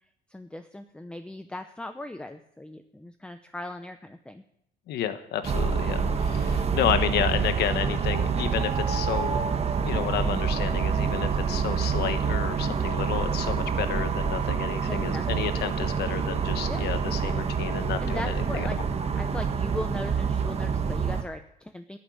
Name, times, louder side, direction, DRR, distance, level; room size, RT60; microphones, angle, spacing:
voice 1, 0.3-4.4 14.9-15.5 16.7-16.9 18.0-22.0, left 1 dB, 5° left, 8 dB, 0.7 m, -38 dB
voice 2, 4.9-9.4 9.8-18.7, left 10 dB, 75° left, 9 dB, 1.4 m, -31 dB
sound 1, 5.4-21.2, right 6 dB, 40° right, 1.4 m, -27 dB
13.5 x 7.6 x 9.5 m, 0.77 s
cardioid pair, 110°, 17 cm